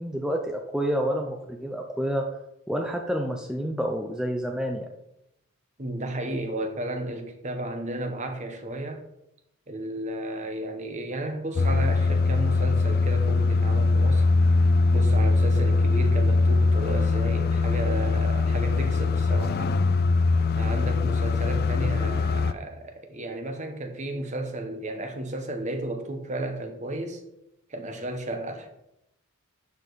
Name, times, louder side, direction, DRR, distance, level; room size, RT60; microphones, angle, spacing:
voice 1, 0.0-2.3 2.7-4.9, equal, 5° right, 2 dB, 0.6 m, -28 dB
voice 2, 5.8-9.0 9.7-14.3 14.9-19.8 20.6-27.2 27.7-28.7, right 1 dB, 35° right, 5 dB, 1.1 m, -33 dB
sound 1, 11.6-22.5, left 3 dB, 45° left, 0.4 m, -22 dB
11.5 x 4.8 x 4.1 m, 0.83 s
head